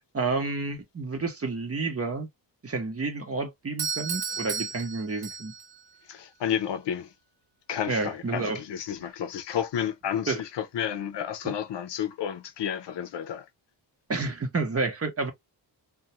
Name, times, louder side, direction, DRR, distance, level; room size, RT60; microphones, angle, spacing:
voice 1, 0.1-2.3 2.6-5.5 7.9-8.6 10.3-10.4 14.1-15.3, right 3 dB, 30° right, 0.9 m, -30 dB
Doorbell, 3.8-5.8, right 6 dB, 60° right, 0.8 m, -33 dB
voice 2, 6.1-7.1 7.7-13.5, left 9 dB, 70° left, 0.6 m, -31 dB
2.3 x 2.2 x 2.9 m
cardioid pair, 80°, 44 cm